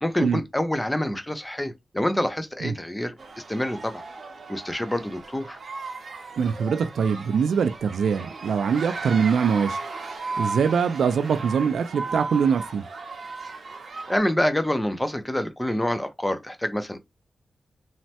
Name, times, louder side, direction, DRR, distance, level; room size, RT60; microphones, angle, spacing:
voice 1, 0.0-4.0 4.5-5.6 14.1-17.0, left 1 dB, 10° left, 0.4 m, -27 dB
sound 1, 3.2-14.2, right 3 dB, 50° right, 0.6 m, -36 dB
voice 2, 6.4-9.8 10.4-12.9, right 6 dB, 90° right, 0.3 m, -23 dB
3.1 x 2.1 x 2.8 m
wide cardioid pair, 155°, 0 cm